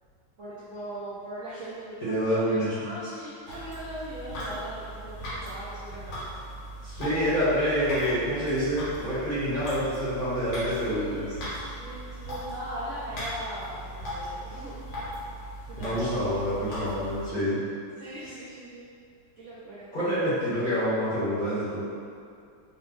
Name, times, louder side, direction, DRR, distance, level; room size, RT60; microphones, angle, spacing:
voice 1, 0.4-6.3 10.9-14.7 15.7-16.3 18.0-18.8 19.4-19.9, right 1 dB, 65° right, -10 dB, 0.7 m, -39 dB
voice 2, 2.0-2.8 6.8-11.2 15.8-17.6 19.9-21.8, equal, 30° left, -13 dB, 1.1 m, -27 dB
sound 1, 3.5-17.3, equal, 80° left, 2.0 m, -38 dB
4.5 x 2.2 x 3.8 m, 2.4 s
omnidirectional pair, 2.2 m